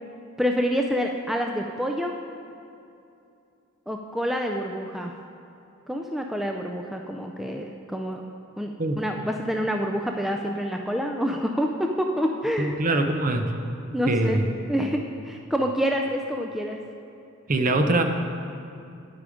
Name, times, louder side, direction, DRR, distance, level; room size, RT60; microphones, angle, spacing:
voice 1, 0.4-2.2 3.9-5.1 5.9-8.2 8.6-12.8 13.9-14.4 14.7-16.8, equal, ahead, 2 dB, 0.3 m, -27 dB
voice 2, 12.6-13.5 14.1-14.5 17.5-18.0, right 2 dB, 40° right, 5 dB, 0.7 m, -23 dB
9.7 x 8.5 x 5.0 m, 2.6 s
head